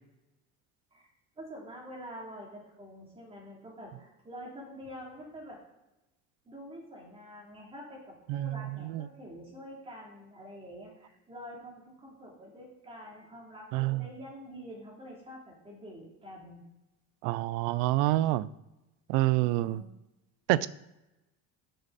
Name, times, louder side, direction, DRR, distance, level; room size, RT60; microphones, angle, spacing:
voice 1, 1.3-5.6 6.4-16.6 19.3-19.9, equal, 15° right, -3 dB, 3.2 m, -47 dB
voice 2, 8.3-9.1 13.7-14.0 17.2-18.5 19.1-19.8 20.5-20.7, right 16 dB, 85° right, 18 dB, 0.6 m, -27 dB
12.0 x 7.8 x 4.2 m, 0.97 s
cardioid pair, 160°, 36 cm